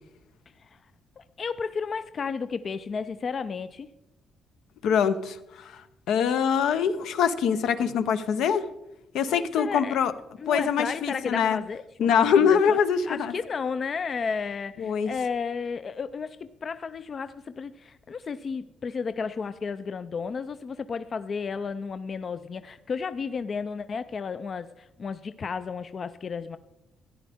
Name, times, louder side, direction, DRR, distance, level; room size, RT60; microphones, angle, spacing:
voice 1, 1.2-3.9 9.3-10.0 10.4-26.6, left 5 dB, 45° left, 12 dB, 0.4 m, -33 dB
voice 2, 4.8-5.8 6.1-8.7 9.1-10.1 10.5-11.6 12.0-13.3 14.8-15.1, left 7 dB, 80° left, 10 dB, 0.7 m, -23 dB
13.0 x 10.0 x 3.5 m, 0.89 s
cardioid pair, 90°, 0 cm